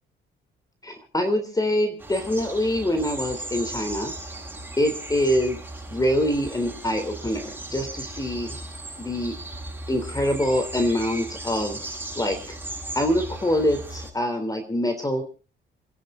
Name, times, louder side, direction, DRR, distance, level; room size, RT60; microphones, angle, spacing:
voice 1, 0.8-4.1 4.8-5.6 5.9-8.6 9.0-9.3 9.9-11.8 12.1-12.6 12.9-15.2, left 1 dB, 20° left, 7 dB, 3.5 m, -25 dB
sound 1, 2.0-14.1, right 2 dB, 10° right, 7.8 m, -37 dB
28.5 x 10.5 x 3.9 m, 0.36 s
cardioid pair, 90°, 20 cm